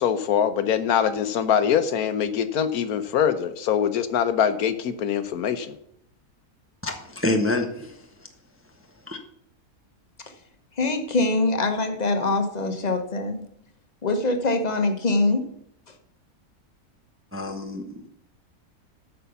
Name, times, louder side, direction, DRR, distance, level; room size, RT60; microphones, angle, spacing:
voice 1, 0.0-5.7, left 8 dB, 80° left, 11 dB, 1.3 m, -23 dB
voice 2, 6.8-8.1 9.1-9.2 17.3-18.1, left 2 dB, 10° right, 4 dB, 0.8 m, -27 dB
voice 3, 10.8-13.4 14.0-15.4, left 2 dB, 30° left, 6 dB, 1.1 m, -23 dB
8.3 x 6.8 x 6.9 m, 0.74 s
omnidirectional pair, 1.5 m